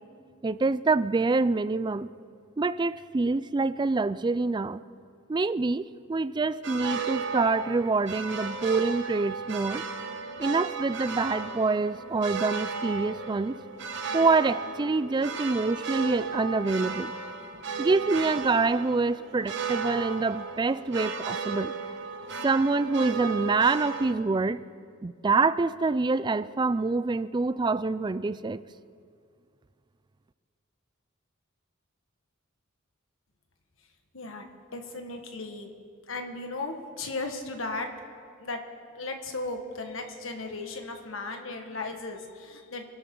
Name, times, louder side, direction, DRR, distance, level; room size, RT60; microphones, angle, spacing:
voice 1, 0.4-2.1 2.6-4.8 5.3-9.8 10.4-13.6 14.1-17.1 17.8-21.7 22.4-24.6 25.0-28.6, right 3 dB, 20° right, 15 dB, 0.3 m, -26 dB
sound 1, 6.6-24.1, right 5 dB, 60° right, 1.2 m, -35 dB
voice 2, 34.1-34.4 34.7-35.7 36.1-37.9 38.4-38.6 38.9-42.8, left 3 dB, 70° left, 4 dB, 1.6 m, -36 dB
27.0 x 13.0 x 3.9 m, 2.3 s
head